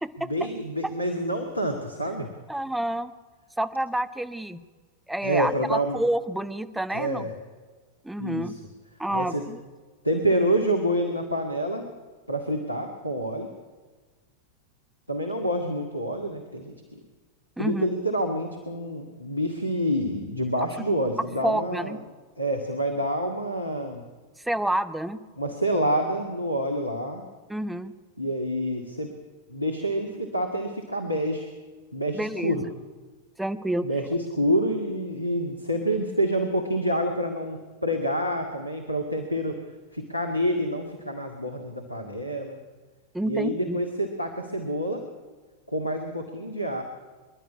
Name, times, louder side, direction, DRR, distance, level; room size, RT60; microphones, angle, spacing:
voice 1, 0.2-2.3 5.2-6.0 6.9-7.3 8.2-8.6 9.1-9.4 10.0-11.9 12.3-13.5 15.1-16.8 17.6-22.0 22.4-24.0 25.4-27.2 28.2-29.1 29.5-31.5 31.9-32.6 33.8-39.6 39.9-42.6 43.2-45.0 45.7-46.8, equal, 85° left, 4 dB, 1.9 m, -27 dB
voice 2, 2.5-3.1 3.6-4.6 5.1-7.3 8.0-8.5 9.0-9.6 17.6-17.9 21.4-22.0 24.4-25.2 27.5-27.9 32.1-32.7 33.4-33.9 43.1-43.8, right 1 dB, 5° right, 12 dB, 1.1 m, -28 dB
25.5 x 11.5 x 9.7 m, 1.4 s
figure-of-eight pair, 90°, 0 cm